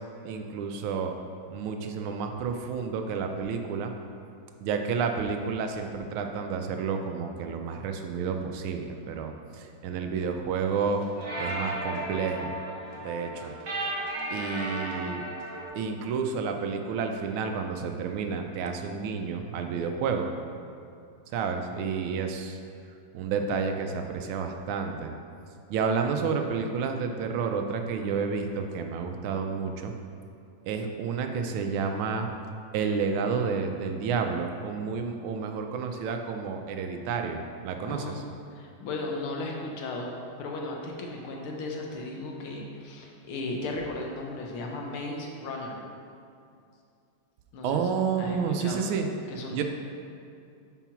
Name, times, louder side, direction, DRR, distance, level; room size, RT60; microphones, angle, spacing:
voice 1, 0.2-1.1 1.5-3.9 4.6-11.0 11.4-12.5 13.0-13.5 14.3-15.2 15.7-20.3 21.3-22.6 23.1-25.1 25.7-29.9 30.7-32.3 32.7-38.2 47.6-49.1 49.5-49.6, right 5 dB, 85° right, 5 dB, 1.5 m, -30 dB
sound 1, 10.7-15.7, right 1 dB, 45° right, 1.5 m, -35 dB
voice 2, 37.8-40.1 40.4-45.8 47.5-48.8 49.3-49.6, left 2 dB, 85° left, 0 dB, 1.8 m, -36 dB
5.8 x 4.5 x 5.7 m, 2.5 s
omnidirectional pair, 2.3 m